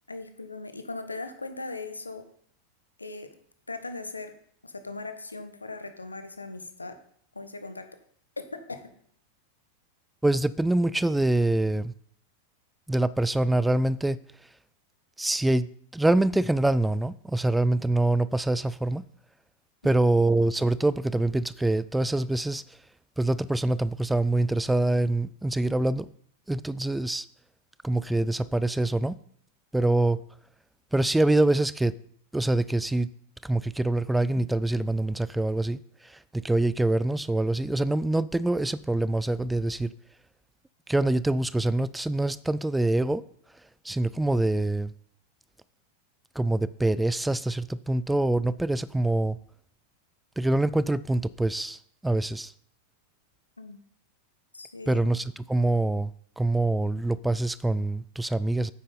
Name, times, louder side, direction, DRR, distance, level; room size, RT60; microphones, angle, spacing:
voice 1, 0.1-2.2 3.0-3.3 3.7-4.3 4.6-7.0 7.3-7.9 8.5-8.9 19.8-20.1 53.6-53.8 54.5-55.1, left 3 dB, 80° left, 1.1 m, -39 dB
voice 2, 10.2-11.9 12.9-14.2 15.2-15.7 15.9-19.1 19.8-22.8 23.2-26.1 26.5-27.3 27.8-29.2 29.7-30.2 30.9-31.9 32.3-33.1 33.4-39.9 40.9-43.2 43.8-44.9 46.4-49.4 50.4-52.5 54.9-58.7, right 2 dB, 5° right, 0.4 m, -25 dB
9.2 x 8.4 x 4.3 m
figure-of-eight pair, 90°, 0 cm